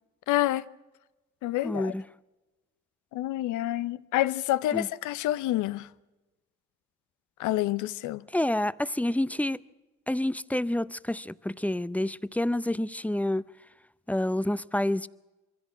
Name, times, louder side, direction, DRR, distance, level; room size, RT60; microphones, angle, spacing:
voice 1, 0.3-0.6 1.4-1.9 3.1-5.9 7.4-8.2, left 15 dB, 80° left, 0.8 m, -28 dB
voice 2, 1.6-2.0 4.7-4.9 8.3-9.6 10.1-13.4 14.1-15.1, left 1 dB, 5° left, 0.6 m, -28 dB
23.0 x 16.0 x 7.5 m
supercardioid pair, 70°, 29 cm